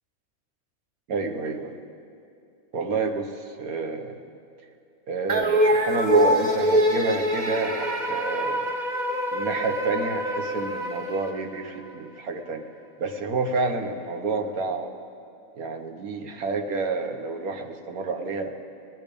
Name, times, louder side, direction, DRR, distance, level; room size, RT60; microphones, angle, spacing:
voice 1, 1.1-1.8 2.7-4.2 5.1-8.8 9.3-12.6 13.0-14.9 15.6-18.5, right 3 dB, 80° right, 5 dB, 1.5 m, -29 dB
sound 1, 5.3-11.8, equal, 35° right, 0.9 m, -24 dB
19.5 x 11.0 x 5.3 m, 2.6 s
omnidirectional pair, 1.5 m